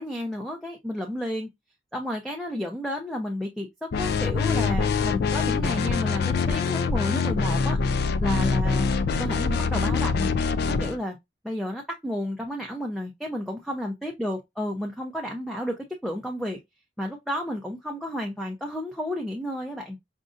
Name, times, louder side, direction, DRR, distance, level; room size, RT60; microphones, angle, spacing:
voice 1, 0.0-1.5 1.9-7.8 8.2-8.9 9.2-10.3 10.7-11.2 11.4-16.6 17.0-20.0, equal, ahead, 0.5 m, -32 dB
sound 1, 3.9-11.0, left 5 dB, 55° left, 0.3 m, -24 dB
5.1 x 2.5 x 2.5 m
head